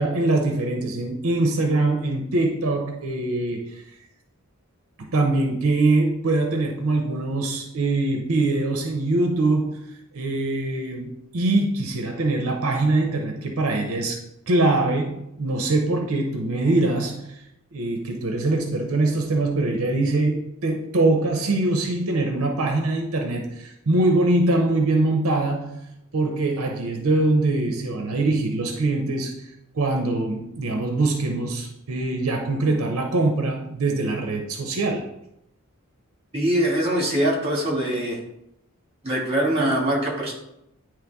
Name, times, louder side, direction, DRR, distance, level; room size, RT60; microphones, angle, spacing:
voice 1, 0.0-3.8 5.0-9.8 10.1-14.2 14.5-17.4 17.7-25.8 26.1-29.5 29.7-35.1, right 2 dB, 75° right, 3 dB, 0.7 m, -23 dB
voice 2, 36.3-38.2 39.0-40.3, right 1 dB, 30° right, -2 dB, 1.9 m, -23 dB
9.4 x 3.2 x 3.5 m, 0.82 s
head